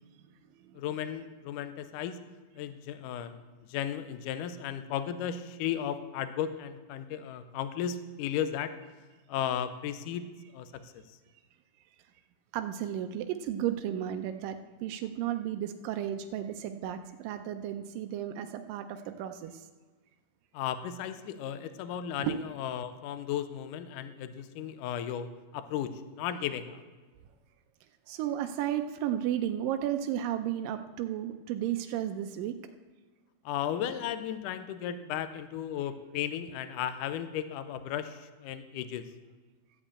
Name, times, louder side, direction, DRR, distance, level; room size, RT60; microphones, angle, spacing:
voice 1, 0.8-2.2 2.6-3.4 3.7-8.7 9.3-11.0 20.5-26.8 33.5-39.1, left 9 dB, 80° left, 10 dB, 2.1 m, -35 dB
voice 2, 12.5-19.7 22.2-22.4 28.1-32.6, right 11 dB, 90° right, 7 dB, 2.3 m, -33 dB
14.0 x 5.2 x 8.4 m, 1.3 s
omnidirectional pair, 3.8 m